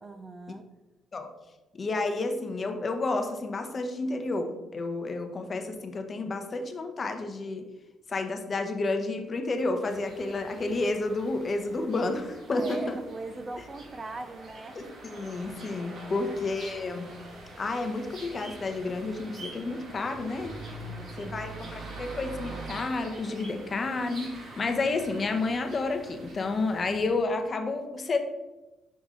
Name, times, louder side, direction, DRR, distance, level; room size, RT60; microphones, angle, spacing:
voice 1, 0.0-0.7 12.4-14.8 16.0-16.4 20.8-21.9, right 3 dB, 30° right, 9 dB, 0.5 m, -41 dB
voice 2, 1.8-7.6 8.1-12.8 14.7-17.1 17.6-20.5 21.2-28.2, left 3 dB, 40° left, 6 dB, 0.8 m, -30 dB
sound 1, 9.8-27.1, right 2 dB, 65° right, 2.0 m, -44 dB
6.5 x 5.0 x 3.8 m, 1.1 s
cardioid pair, 90°, 0 cm